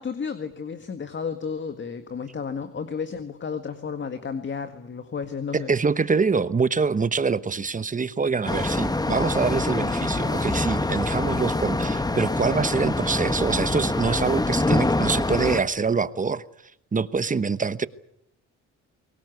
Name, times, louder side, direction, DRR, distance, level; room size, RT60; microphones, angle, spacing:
voice 1, 0.0-5.7, left 6 dB, 40° left, 1.8 m, -32 dB
voice 2, 5.5-16.4 16.9-17.9, right 5 dB, 25° right, 1.0 m, -25 dB
sound 1, 8.5-15.6, left 2 dB, 15° left, 1.2 m, -25 dB
23.0 x 18.5 x 9.5 m
cardioid pair, 90°, 30 cm